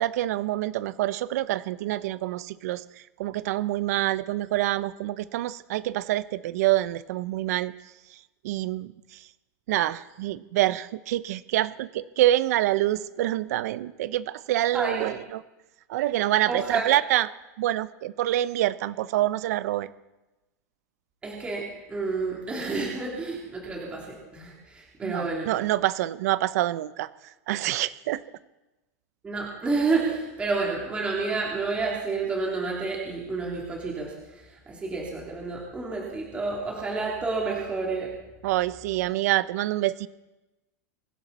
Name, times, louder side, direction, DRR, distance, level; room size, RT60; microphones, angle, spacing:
voice 1, 0.0-2.8 3.2-7.7 8.4-9.2 9.7-15.4 15.9-17.3 17.6-19.9 25.0-27.1 27.5-28.2 38.4-40.1, right 14 dB, 70° right, 16 dB, 0.7 m, -26 dB
voice 2, 14.7-15.1 16.5-17.0 21.2-21.6 21.9-25.5 29.2-34.1 34.7-38.1, right 4 dB, 15° right, -3 dB, 3.0 m, -29 dB
24.0 x 11.5 x 4.2 m, 1.0 s
supercardioid pair, 165°, 9 cm